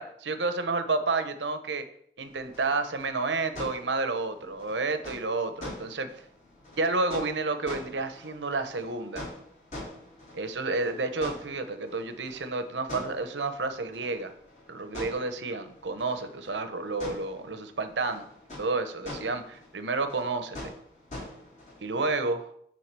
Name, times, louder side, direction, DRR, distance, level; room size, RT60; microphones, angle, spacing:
voice 1, 0.0-1.8 2.2-6.1 6.8-9.3 10.3-14.3 14.7-18.2 18.6-20.7 21.8-22.5, right 3 dB, 90° right, 9 dB, 0.9 m, -30 dB
sound 1, 2.2-22.0, left 1 dB, 40° left, 3.2 m, -45 dB
9.3 x 3.8 x 6.7 m, 0.67 s
head